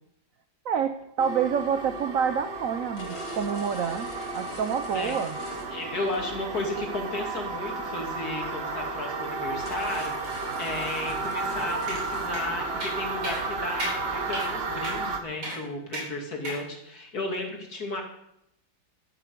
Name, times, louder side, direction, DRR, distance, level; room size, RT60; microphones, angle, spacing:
voice 1, 0.6-5.4, right 7 dB, 70° right, 10 dB, 0.8 m, -28 dB
sound 1, 1.2-15.2, right 3 dB, 40° right, 1.0 m, -33 dB
sound 2, 2.0-2.1 3.0-6.1 6.6-6.8 8.7-8.8 9.1-9.2 9.6-12.4 12.6-12.8 13.1-13.8, left 3 dB, 80° left, 3.3 m, -45 dB
voice 2, 5.7-18.0, left 2 dB, 50° left, 1 dB, 2.9 m, -34 dB
sound 3, 11.9-12.0 12.3-12.4 12.8-13.0 13.2-13.4 13.8-14.0 14.3-14.5 14.8-15.0 15.4-15.6 15.9-16.1 16.4-16.6, right 1 dB, 85° right, 4.7 m, -33 dB
12.5 x 8.9 x 6.8 m, 0.78 s
omnidirectional pair, 2.2 m